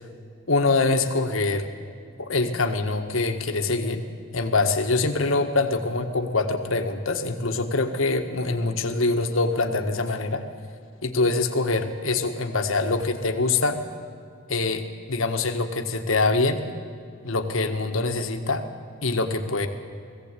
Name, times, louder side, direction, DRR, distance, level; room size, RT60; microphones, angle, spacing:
voice 1, 0.5-1.7 2.2-4.0 4.3-10.4 11.0-13.8 14.5-16.6 17.2-18.6 19.0-19.7, left 3 dB, 85° left, 6 dB, 1.5 m, -24 dB
20.0 x 16.0 x 8.4 m, 2.4 s
head